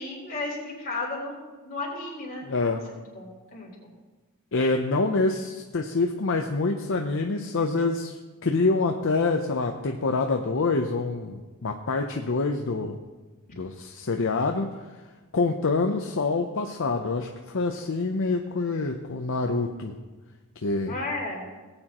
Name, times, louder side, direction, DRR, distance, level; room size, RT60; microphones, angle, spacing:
voice 1, 0.0-3.9 20.9-21.5, left 2 dB, 40° left, -3 dB, 3.8 m, -34 dB
voice 2, 2.5-2.8 4.5-13.0 13.6-14.8 15.3-19.9 20.6-20.9, left 3 dB, 60° left, 3 dB, 0.7 m, -26 dB
18.5 x 8.8 x 3.0 m, 1.3 s
head